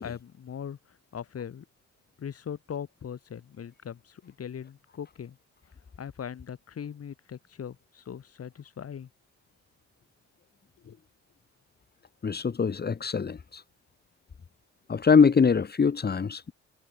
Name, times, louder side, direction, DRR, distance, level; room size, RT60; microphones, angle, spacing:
voice 1, 0.0-1.7 2.2-5.4 6.0-9.1 10.8-11.0, left 8 dB, 50° left, 3.7 m, -40 dB
voice 2, 12.2-13.6 14.9-16.5, left 5 dB, 30° left, 1.8 m, -23 dB
cardioid pair, 90°, 30 cm